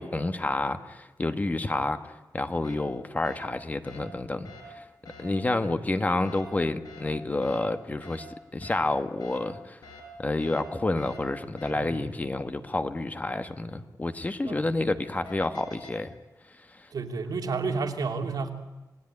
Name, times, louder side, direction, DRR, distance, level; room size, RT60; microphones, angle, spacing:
voice 1, 0.0-2.0 2.3-4.8 5.2-8.3 8.5-9.8 10.2-16.1, left 2 dB, 25° left, 9 dB, 1.2 m, -29 dB
sound 1, 2.6-2.8 3.2-3.4 3.8-4.0 4.4-4.6 5.1-5.2 6.2-6.4 6.8-7.0 7.4-7.6 8.0-8.2 8.6-8.8 9.2-9.4 9.8-10.0 10.4-10.6 11.0-11.2 11.6-11.7 14.6-15.9, left 4 dB, 70° left, 6.7 m, -47 dB
voice 2, 16.9-18.5, right 4 dB, 75° right, 3 dB, 3.0 m, -31 dB
28.0 x 19.0 x 9.8 m, 1.1 s
wide cardioid pair, 150°, 7 cm